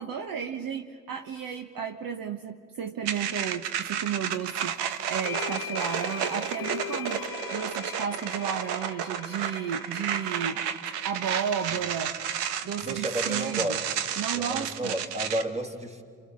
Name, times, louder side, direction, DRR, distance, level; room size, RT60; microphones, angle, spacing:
voice 1, 0.0-7.2 7.5-10.7 11.0-12.1 12.6-13.8 14.2-15.0, right 7 dB, 50° right, 4 dB, 1.5 m, -33 dB
sound 1, 3.0-15.4, right 9 dB, 70° right, 1.2 m, -32 dB
sound 2, 4.3-4.4 5.2-13.3, left 11 dB, 50° left, 0.9 m, -41 dB
voice 2, 12.8-13.9 14.3-16.0, right 1 dB, 15° right, 4 dB, 2.9 m, -32 dB
28.5 x 27.5 x 6.6 m, 2.1 s
hypercardioid pair, 60°, 43 cm